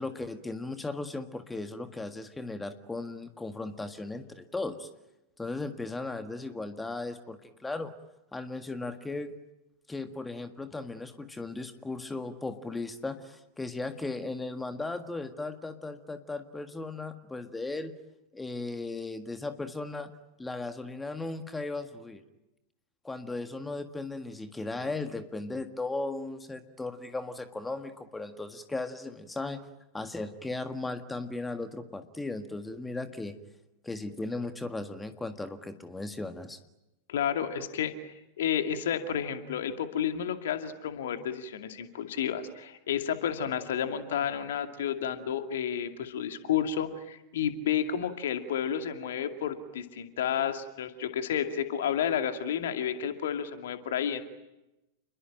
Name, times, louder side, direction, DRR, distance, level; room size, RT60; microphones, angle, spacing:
voice 1, 0.0-4.9 5.4-7.9 8.3-9.3 9.9-17.9 18.3-20.1 20.4-22.2 23.0-29.6 29.9-33.3 33.8-36.6, left 2 dB, 10° left, 9 dB, 1.7 m, -36 dB
voice 2, 37.1-54.2, left 9 dB, 60° left, 7 dB, 2.4 m, -31 dB
29.0 x 22.0 x 9.0 m, 0.95 s
figure-of-eight pair, 90°, 0 cm